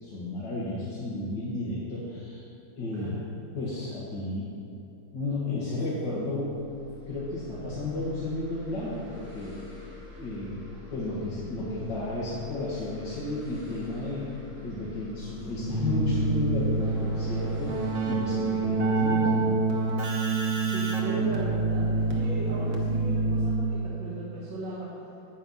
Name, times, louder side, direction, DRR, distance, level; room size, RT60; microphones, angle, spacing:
voice 1, 0.0-2.4 2.8-3.1 3.5-4.5 5.1-6.7 7.1-9.9 10.2-14.3 14.6-19.6, left 2 dB, 75° left, -8 dB, 2.4 m, -33 dB
voice 2, 2.9-3.3 20.6-24.9, right 2 dB, 90° right, -7 dB, 2.2 m, -36 dB
sound 1, 6.3-21.7, left 3 dB, 70° right, 3.9 m, -47 dB
Keyboard (musical), 15.6-23.9, right 3 dB, 50° right, 1.6 m, -27 dB
10.0 x 9.0 x 5.6 m, 2.6 s
omnidirectional pair, 1.9 m